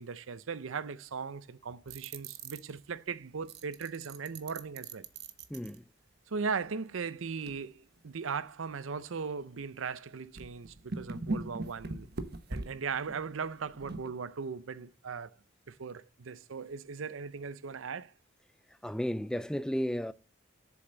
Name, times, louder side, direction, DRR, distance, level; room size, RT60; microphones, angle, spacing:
voice 1, 0.0-5.1 6.3-12.1 12.5-15.3 15.7-18.1, right 5 dB, 80° right, 0.6 m, -38 dB
sound 1, 1.9-2.7 3.5-5.8 7.4-7.5 8.0-8.1 9.1-9.2 9.6-9.7 10.4-14.1, right 2 dB, 50° right, 1.0 m, -39 dB
voice 2, 5.5-5.8 18.7-20.1, equal, 5° left, 0.3 m, -33 dB
7.9 x 7.1 x 3.9 m
head